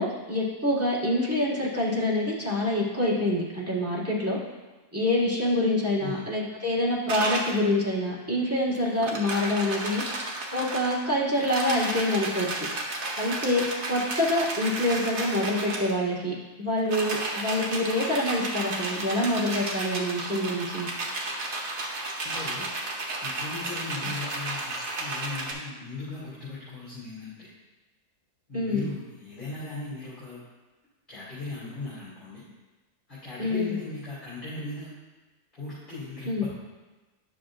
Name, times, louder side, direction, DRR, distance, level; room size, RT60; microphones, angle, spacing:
voice 1, 0.0-4.4 4.9-10.0 10.5-12.7 13.2-20.9 28.5-28.9 33.4-33.7 36.2-36.5, left 1 dB, 10° right, -7 dB, 1.6 m, -26 dB
sound 1, 7.1-7.6 8.7-11.0 11.3-15.9 16.8-25.5, right 2 dB, 65° right, 1.5 m, -33 dB
voice 2, 22.2-22.7 23.2-27.5 28.5-30.4 31.1-32.4 33.1-34.9 35.5-36.5, left 3 dB, 30° left, -12 dB, 3.0 m, -38 dB
11.0 x 6.4 x 2.5 m, 1.2 s
omnidirectional pair, 1.6 m